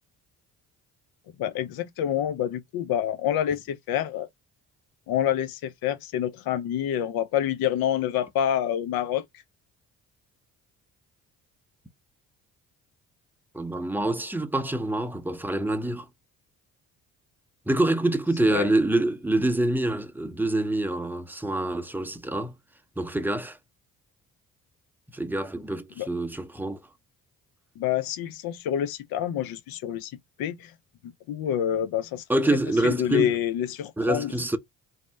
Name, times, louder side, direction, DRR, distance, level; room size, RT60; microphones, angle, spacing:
voice 1, 1.4-4.3 5.1-9.2 18.5-18.7 26.0-26.1 27.8-30.1 30.4-30.7 31.3-32.2 32.8-34.3, left 10 dB, 65° left, 0.5 m, -27 dB
voice 2, 13.5-16.1 17.7-22.5 23.0-23.6 25.1-26.8 32.3-33.4 34.0-34.6, right 1 dB, 5° right, 0.6 m, -26 dB
2.7 x 2.0 x 3.2 m
hypercardioid pair, 50°, 40 cm